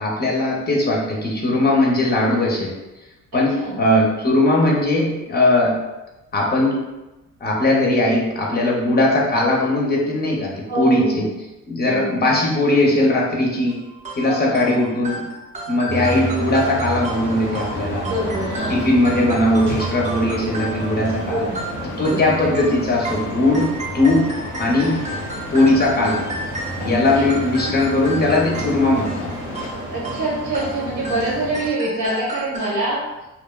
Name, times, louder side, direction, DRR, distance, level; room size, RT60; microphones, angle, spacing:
voice 1, 0.0-2.7 3.3-5.8 6.3-6.8 7.4-11.3 11.7-13.8 14.2-15.3 15.7-18.1 18.7-21.5 21.8-24.3 24.6-25.0 25.5-26.3 26.8-29.3, left 1 dB, 30° left, -2 dB, 0.6 m, -19 dB
voice 2, 3.3-3.8 10.7-11.3 11.8-12.2 14.2-14.8 18.0-18.8 21.2-22.3 26.8-27.2 29.9-33.0, right 1 dB, 75° right, -6 dB, 1.3 m, -26 dB
sound 1, 13.7-32.8, right 2 dB, 25° right, 0.5 m, -34 dB
sound 2, 15.9-31.7, right 1 dB, 55° right, 0.9 m, -31 dB
sound 3, 17.9-29.7, left 3 dB, 85° left, 0.5 m, -37 dB
2.8 x 2.0 x 2.2 m, 1.0 s
cardioid pair, 90°, 30 cm